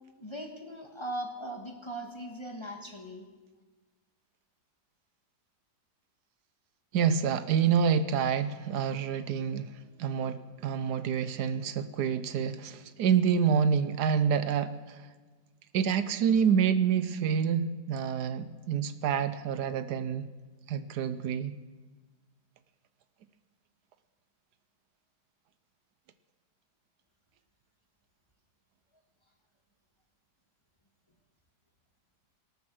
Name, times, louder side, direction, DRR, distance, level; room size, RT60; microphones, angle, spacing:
voice 1, 0.2-3.3, right 1 dB, 20° left, 2 dB, 1.3 m, -39 dB
voice 2, 6.9-15.1 15.7-20.3 20.7-21.5, right 7 dB, 75° right, 12 dB, 1.2 m, -28 dB
19.0 x 12.0 x 6.3 m, 1.3 s
omnidirectional pair, 1.8 m